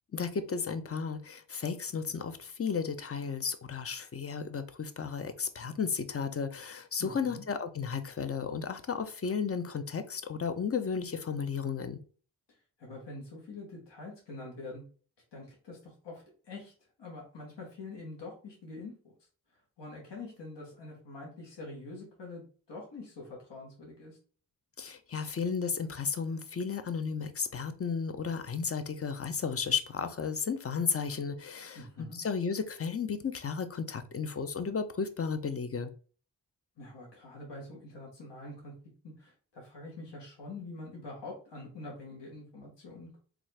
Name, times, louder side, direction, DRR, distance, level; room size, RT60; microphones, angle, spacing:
voice 1, 0.1-12.0 24.8-35.9, left 6 dB, 35° left, 0.6 m, -34 dB
voice 2, 7.0-7.4 12.5-14.8 15.3-16.7 17.0-19.1 19.5-22.4 22.7-24.2 31.7-32.2 36.8-38.7 39.0-43.2, left 2 dB, 75° left, 1.4 m, -45 dB
3.7 x 2.4 x 3.3 m
cardioid pair, 40°, 43 cm